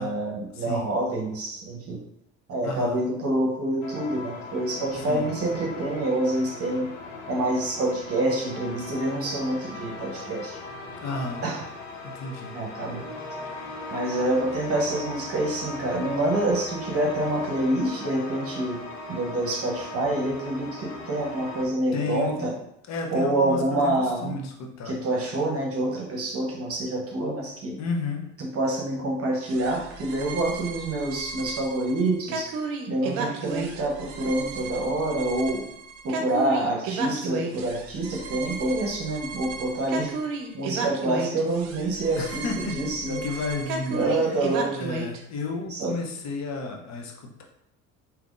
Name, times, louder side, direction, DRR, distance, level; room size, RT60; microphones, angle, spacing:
voice 1, 0.0-2.0 2.5-6.9 7.3-10.6 11.4-11.6 12.5-13.0 13.9-18.8 19.1-22.5 23.1-24.4 24.8-27.8 28.4-32.5 32.9-35.6 36.0-40.1 40.5-43.2 43.9-44.8 45.7-45.9, right 1 dB, 40° right, -1 dB, 0.9 m, -27 dB
voice 2, 0.5-0.9 2.6-3.0 5.1-5.3 11.0-11.4 12.0-12.5 21.9-22.6 22.9-25.0 27.8-28.3 40.8-40.9 42.2-44.1 44.7-47.4, left 3 dB, 45° left, 2 dB, 0.8 m, -32 dB
sound 1, 3.8-21.7, left 3 dB, 80° left, 0.7 m, -38 dB
sound 2, 29.5-45.2, right 4 dB, 65° right, 0.6 m, -34 dB
3.4 x 2.9 x 2.5 m, 0.78 s
hypercardioid pair, 65°, 37 cm